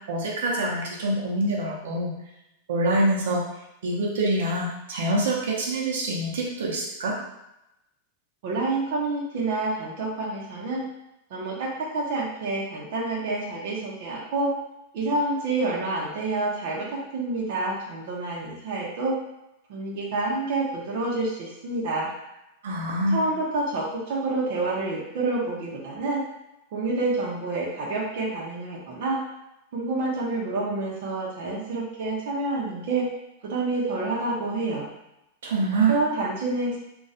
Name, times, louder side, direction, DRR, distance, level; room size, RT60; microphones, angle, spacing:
voice 1, 0.1-2.1 2.7-3.4 3.8-7.2 22.6-23.2 35.4-36.0, right 2 dB, 80° right, -2 dB, 0.8 m, -25 dB
voice 2, 8.4-10.9 11.3-14.5 14.9-19.1 19.7-22.1 23.1-26.2 26.7-29.2 29.7-33.1 33.4-34.9 35.9-36.8, right 2 dB, 45° right, -4 dB, 0.8 m, -28 dB
2.5 x 2.3 x 4.0 m, 0.89 s
supercardioid pair, 180°, 0 cm